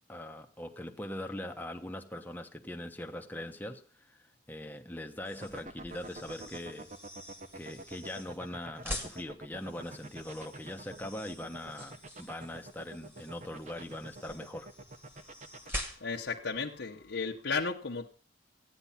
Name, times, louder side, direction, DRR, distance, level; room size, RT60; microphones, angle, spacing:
voice 1, 0.1-6.9 7.5-14.7, left 1 dB, 10° left, 1.0 m, -41 dB
sound 1, 5.2-16.3, left 1 dB, 10° right, 2.0 m, -46 dB
sound 2, 5.3-15.7, right 2 dB, 35° right, 1.0 m, -46 dB
voice 2, 15.6-18.1, left 4 dB, 65° left, 1.1 m, -35 dB
15.5 x 9.7 x 5.8 m
head